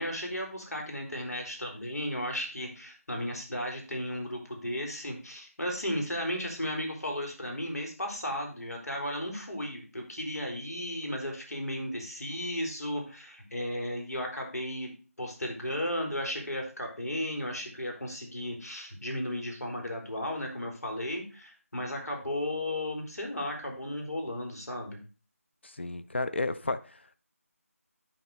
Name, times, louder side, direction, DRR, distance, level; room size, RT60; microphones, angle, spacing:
voice 1, 0.0-25.0, left 1 dB, 90° left, 3.7 m, -35 dB
voice 2, 25.6-27.2, left 2 dB, 45° left, 0.6 m, -33 dB
11.0 x 4.3 x 4.6 m
figure-of-eight pair, 175°, 8 cm